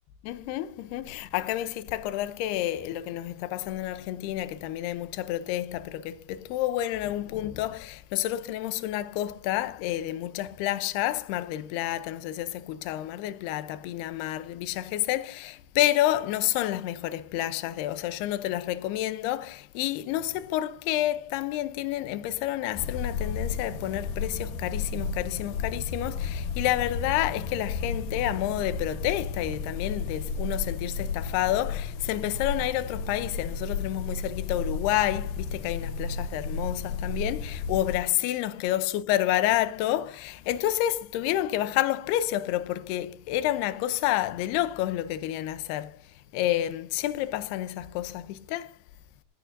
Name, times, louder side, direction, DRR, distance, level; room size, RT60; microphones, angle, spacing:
voice 1, 0.2-48.8, left 14 dB, 80° left, 2.8 m, -29 dB
sound 1, 22.7-38.0, left 4 dB, 65° left, 2.5 m, -33 dB
16.0 x 16.0 x 2.7 m
omnidirectional pair, 4.6 m